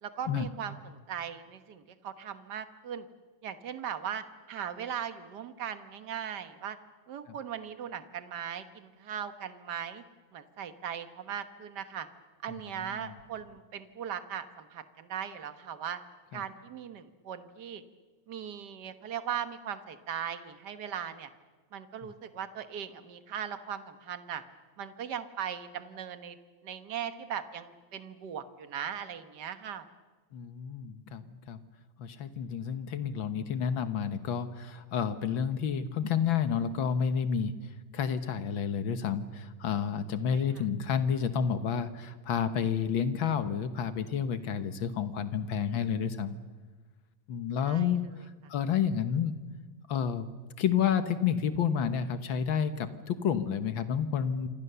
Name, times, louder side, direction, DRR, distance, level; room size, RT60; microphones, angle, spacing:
voice 1, 0.0-3.1 3.4-6.8 7.1-10.0 10.3-12.1 12.4-16.0 16.3-17.8 18.3-21.3 21.7-24.4 24.8-26.4 26.6-29.8 40.3-40.4 47.6-47.9, right 8 dB, 55° right, 10 dB, 1.2 m, -39 dB
voice 2, 12.5-13.1 16.3-16.4 22.0-22.1 30.3-31.6 32.0-37.5 37.9-46.4 47.3-49.3 49.9-50.3 50.6-54.5, left 7 dB, 55° left, 11 dB, 1.5 m, -30 dB
28.0 x 25.5 x 6.9 m, 1.4 s
omnidirectional pair, 3.4 m